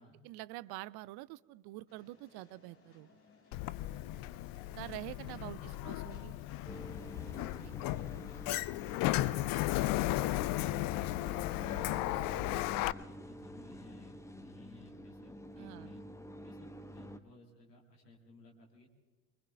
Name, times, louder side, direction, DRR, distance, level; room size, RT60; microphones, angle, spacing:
voice 1, 0.2-3.1 4.7-6.3 7.0-7.1 7.6-7.7 9.2-9.5 15.6-15.9, right 18 dB, 55° right, 19 dB, 0.5 m, -46 dB
sound 1, 1.9-12.1, left 3 dB, 30° left, 3.6 m, -65 dB
Sliding door, 3.5-12.9, left 17 dB, 50° left, 0.4 m, -35 dB
voice 2, 5.3-5.6 6.1-6.6 7.1-8.5 9.6-16.0 16.4-19.0, left 2 dB, 85° left, 0 dB, 1.7 m, -59 dB
sound 2, 6.7-17.2, equal, 5° left, 0.9 m, -48 dB
24.0 x 23.0 x 2.3 m, 1.3 s
figure-of-eight pair, 50°, 47 cm